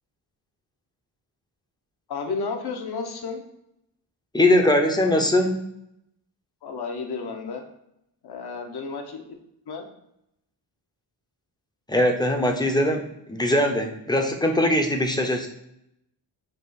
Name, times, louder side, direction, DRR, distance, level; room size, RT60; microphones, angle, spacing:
voice 1, 2.1-3.4 6.6-7.6 8.2-9.2 9.7-9.9, left 4 dB, 60° left, 5 dB, 0.9 m, -32 dB
voice 2, 4.3-5.6 11.9-15.5, left 1 dB, 10° left, 3 dB, 0.6 m, -21 dB
5.4 x 2.4 x 4.0 m, 0.80 s
cardioid pair, 105°, 43 cm